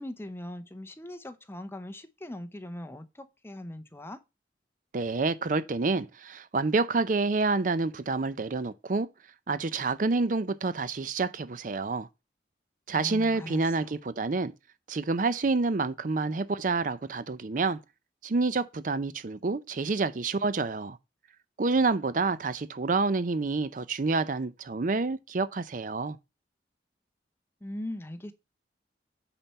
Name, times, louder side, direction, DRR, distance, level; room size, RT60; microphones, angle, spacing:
voice 1, 0.0-4.2 12.9-13.9 27.6-28.3, left 1 dB, 15° left, 0.8 m, -40 dB
voice 2, 4.9-9.1 9.5-12.1 12.9-14.5 14.9-17.8 18.2-21.0 21.6-26.2, right 3 dB, 45° right, 0.5 m, -28 dB
8.9 x 4.4 x 5.6 m
head